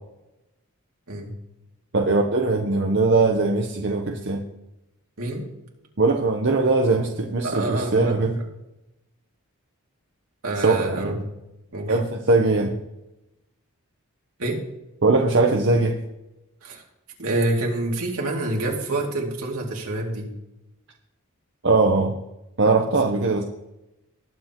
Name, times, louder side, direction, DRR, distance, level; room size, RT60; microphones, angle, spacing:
voice 1, 1.9-4.4 6.0-8.4 10.6-11.1 11.9-12.8 15.0-16.0 21.6-22.2 22.6-23.4, right 3 dB, 50° right, 2 dB, 0.8 m, -20 dB
voice 2, 7.4-8.3 10.4-11.1 11.7-12.0 14.4-14.6 16.6-16.8 17.2-20.3, right 2 dB, 75° right, -1 dB, 2.5 m, -27 dB
19.5 x 7.9 x 3.0 m, 0.93 s
head